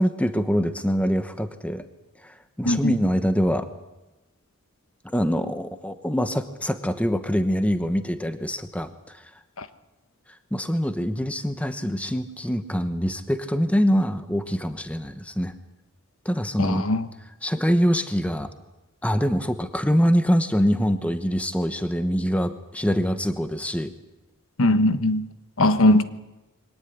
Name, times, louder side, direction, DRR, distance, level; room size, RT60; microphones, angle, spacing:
voice 1, 0.0-1.8 2.2-3.7 5.0-9.2 10.5-15.5 16.2-16.9 17.4-18.5 19.0-23.9, equal, 5° left, 9 dB, 1.1 m, -24 dB
voice 2, 2.6-3.0 9.6-9.7 16.6-17.0 24.6-25.3 25.6-26.0, left 1 dB, 65° left, 10 dB, 1.3 m, -20 dB
23.0 x 18.5 x 9.9 m, 1.0 s
head